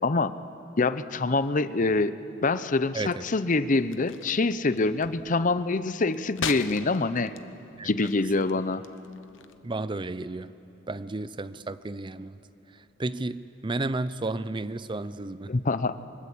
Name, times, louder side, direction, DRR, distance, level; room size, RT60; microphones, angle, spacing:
voice 1, 0.0-0.4 0.8-2.1 2.4-7.3 7.8-8.8 15.5-16.0, left 3 dB, 45° left, 13 dB, 0.7 m, -25 dB
sound 1, 3.7-9.6, left 7 dB, 90° left, 1.0 m, -41 dB
voice 2, 9.6-10.5 10.9-12.4 13.0-15.5, right 2 dB, 25° right, 15 dB, 0.6 m, -32 dB
24.0 x 21.5 x 8.5 m, 2.9 s
head